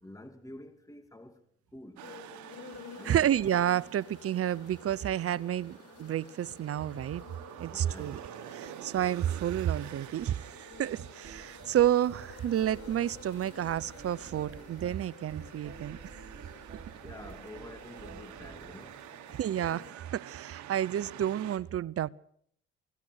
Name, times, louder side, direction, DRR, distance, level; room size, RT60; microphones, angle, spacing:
voice 1, 0.0-1.4 1.7-2.0 3.0-3.3 7.7-8.5 17.0-19.0, left 1 dB, 10° left, 2.6 m, -48 dB
sound 1, 2.0-19.9, left 5 dB, 55° left, 6.0 m, -52 dB
sound 2, 2.0-21.6, right 12 dB, 70° right, 1.5 m, -49 dB
voice 2, 3.0-7.2 7.6-8.2 8.5-16.2 19.3-22.1, right 11 dB, 50° right, 0.8 m, -30 dB
sound 3, 10.2-18.9, right 5 dB, 35° right, 5.3 m, -50 dB
23.5 x 17.5 x 6.4 m
supercardioid pair, 65°, 30 cm